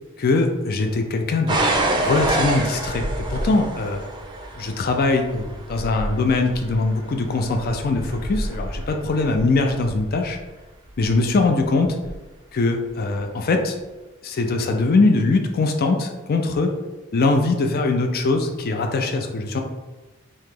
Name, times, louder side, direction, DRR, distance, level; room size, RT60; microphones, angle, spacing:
voice 1, 0.2-1.6 1.9-4.0 4.6-10.4 11.0-11.9 12.5-13.7 14.2-16.7 17.1-19.6, left 3 dB, 50° left, 5 dB, 0.4 m, -21 dB
sound 1, 1.5-10.3 11.0-11.5 12.0-12.1, right 2 dB, 20° right, 0.5 m, -27 dB
3.0 x 2.8 x 3.7 m, 1.1 s
head